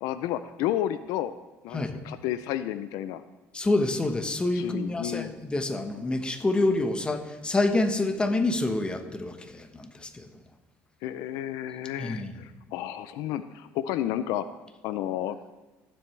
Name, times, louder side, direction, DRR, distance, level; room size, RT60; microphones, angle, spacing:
voice 1, 0.0-1.3 1.6-3.2 4.5-5.4 11.0-14.5 14.8-15.4, left 12 dB, 80° left, 13 dB, 0.4 m, -31 dB
voice 2, 3.5-10.3 12.0-12.3, left 2 dB, 15° left, 7 dB, 1.1 m, -27 dB
17.5 x 7.7 x 3.3 m, 1.1 s
cardioid pair, 110°, 6 cm